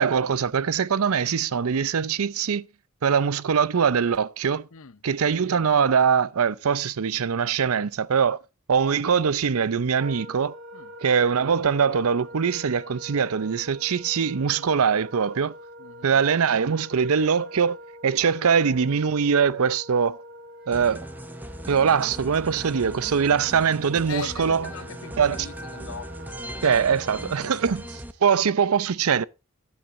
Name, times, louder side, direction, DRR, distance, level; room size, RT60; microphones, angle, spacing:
voice 1, 0.0-2.7 3.0-4.7 5.0-8.4 8.7-10.5 11.0-15.5 16.0-17.8 18.0-20.2 20.7-21.1 21.7-24.7 25.2-25.4 26.6-29.3, right 6 dB, 75° right, 0.5 m, -22 dB
voice 2, 4.7-5.0 10.7-10.9 15.8-16.2 24.1-26.7, left 6 dB, 70° left, 0.7 m, -41 dB
Wind instrument woodwind instrument, 10.0-28.1, equal, 55° right, 3.2 m, -44 dB
sound 1, 20.7-28.1, right 1 dB, 10° right, 0.7 m, -39 dB
15.0 x 10.5 x 2.5 m
head